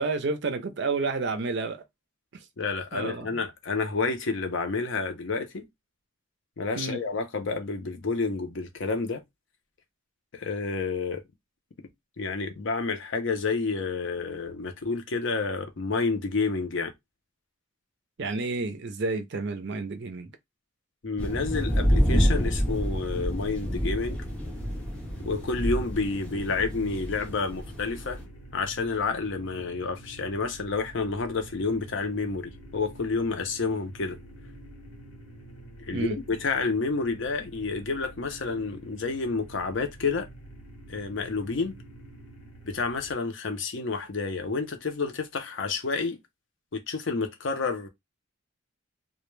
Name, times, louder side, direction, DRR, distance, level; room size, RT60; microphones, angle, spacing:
voice 1, 0.0-1.8 2.9-3.4 6.8-7.0 18.2-20.3 35.9-36.2, right 3 dB, 50° right, 0.4 m, -30 dB
voice 2, 2.6-5.7 6.6-9.2 10.3-11.2 12.2-16.9 21.0-24.2 25.2-28.2 28.5-34.2 35.9-40.3 40.9-41.8 42.6-46.2 46.7-47.9, left 4 dB, 60° left, 0.6 m, -29 dB
sound 1, 21.2-28.2, equal, 5° left, 0.6 m, -28 dB
sound 2, 24.0-43.2, right 1 dB, 90° left, 1.0 m, -47 dB
2.2 x 2.1 x 3.1 m
head